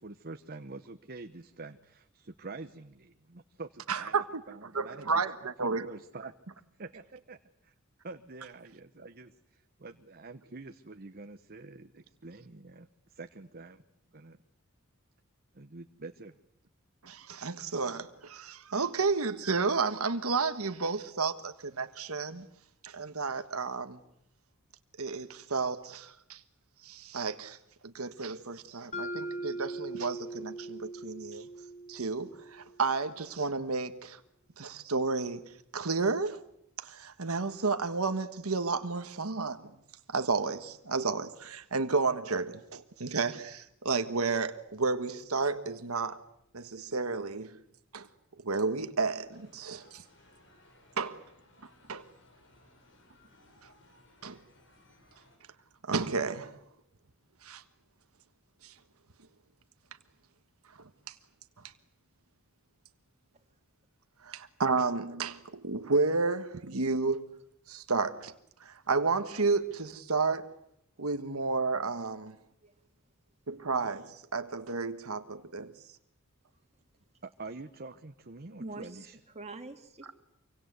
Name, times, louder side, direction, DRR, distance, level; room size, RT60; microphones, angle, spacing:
voice 1, 0.0-5.2 5.6-6.3 6.8-7.7 8.0-13.8 14.1-14.4 15.5-16.4 77.2-79.2, right 3 dB, 45° right, 1.0 m, -46 dB
voice 2, 3.9-4.4 4.7-5.9 17.0-22.4 22.8-24.0 25.0-26.4 26.8-27.6 27.8-31.5 31.9-34.2 34.6-36.4 36.8-39.8 40.1-46.2 46.5-47.6 47.9-48.1 48.4-50.0 51.0-51.2 51.9-52.0 54.2-54.4 55.8-56.6 57.4-57.6 58.6-58.7 60.8-61.1 64.2-67.3 67.7-68.3 68.6-70.5 71.0-72.4 73.5-75.7, right 4 dB, 85° right, 1.4 m, -32 dB
Mallet percussion, 28.9-33.0, right 1 dB, 30° left, 1.8 m, -40 dB
sound 1, 49.3-55.4, left 2 dB, 60° left, 7.4 m, -62 dB
voice 3, 78.6-79.1 79.3-80.1, right 2 dB, 30° right, 3.1 m, -44 dB
26.0 x 24.5 x 8.2 m
head